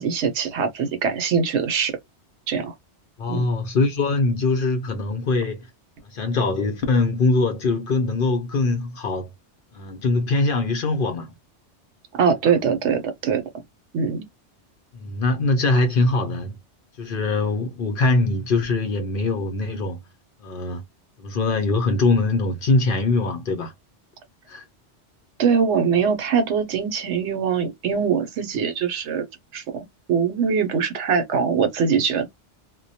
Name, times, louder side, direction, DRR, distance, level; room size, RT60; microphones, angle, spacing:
voice 1, 0.0-1.9 2.5-2.7 3.3-3.5 12.1-13.6 13.9-14.3 25.4-29.3 29.5-32.3, right 6 dB, 75° right, 0.9 m, -22 dB
voice 2, 3.2-5.7 6.0-9.3 9.7-11.3 12.4-12.5 14.9-16.6 17.0-20.0 20.4-20.8 21.2-23.7 24.5-24.6, left 3 dB, 55° left, 0.7 m, -22 dB
2.2 x 2.1 x 2.7 m
omnidirectional pair, 1.2 m